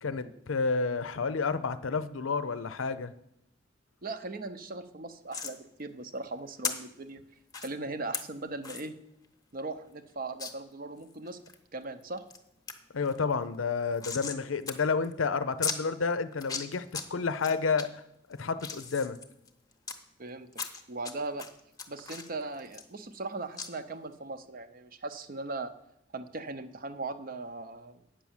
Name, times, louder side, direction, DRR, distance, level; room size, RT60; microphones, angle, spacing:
voice 1, 0.0-3.1 12.9-18.0 18.4-19.2, left 4 dB, 90° left, 13 dB, 0.6 m, -30 dB
voice 2, 4.0-7.2 7.6-8.9 9.5-11.4 11.7-12.2 20.2-20.5 20.9-21.5 21.9-25.7 26.1-28.0, right 3 dB, 45° right, 10 dB, 0.7 m, -39 dB
sound 1, 5.3-5.6 6.6-6.7 7.5-7.7 8.1-8.2 8.6-8.9 9.2-9.3 9.6-9.7 10.4-10.5 11.0-11.6 12.0-12.4 12.7-12.8 13.0-14.4 14.7-14.8 15.0-15.1 15.6-15.8 16.3-17.0 17.4-17.8 18.3-19.9 20.5-21.1 21.4-23.3 23.6-23.7, left 5 dB, 20° left, 0.7 m, -36 dB
8.8 x 6.1 x 7.2 m, 0.78 s
head